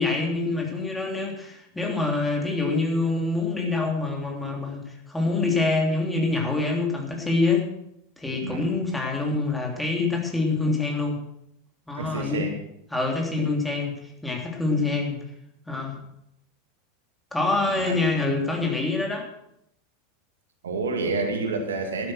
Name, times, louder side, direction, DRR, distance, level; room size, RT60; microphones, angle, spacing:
voice 1, 0.0-7.7 8.2-11.2 11.9-12.5 12.9-15.2 15.7-16.0 17.3-19.3, left 3 dB, 5° left, 1 dB, 3.3 m, -25 dB
voice 2, 12.0-12.5 14.8-14.9 17.6-18.0 20.6-22.1, right 3 dB, 75° right, 4 dB, 2.0 m, -29 dB
12.0 x 10.5 x 6.3 m, 0.78 s
figure-of-eight pair, 85°, 0 cm